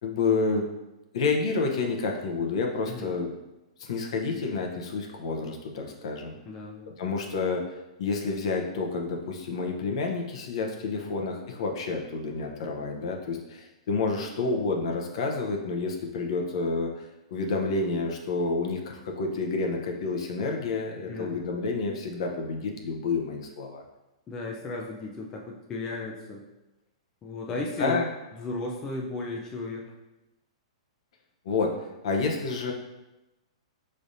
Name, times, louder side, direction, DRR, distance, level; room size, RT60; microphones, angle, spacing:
voice 1, 0.0-0.7 1.1-3.3 3.8-6.3 7.0-7.6 8.0-23.8 27.5-28.1 31.4-32.7, left 4 dB, 60° left, 1 dB, 0.7 m, -29 dB
voice 2, 6.4-6.9 11.0-11.1 21.1-21.4 24.3-26.4 27.2-28.0 28.3-29.9, left 2 dB, 20° left, -1 dB, 0.4 m, -35 dB
5.0 x 3.2 x 2.6 m, 1.0 s
hypercardioid pair, 150°, 3 cm